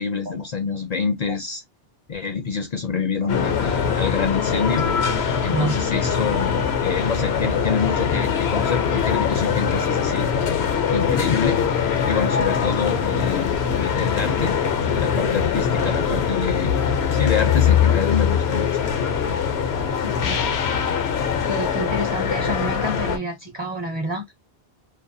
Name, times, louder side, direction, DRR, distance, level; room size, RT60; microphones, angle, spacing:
voice 1, 0.0-1.6 2.1-4.9 5.4-10.3 10.9-11.6 12.1-14.6 14.9-16.7 17.1-18.7, left 6 dB, 55° left, 0.5 m, -27 dB
sound 1, 3.3-23.2, left 7 dB, 85° left, 0.9 m, -22 dB
voice 2, 20.0-20.4 21.5-24.3, equal, 35° right, 0.6 m, -28 dB
2.4 x 2.2 x 2.5 m
omnidirectional pair, 1.0 m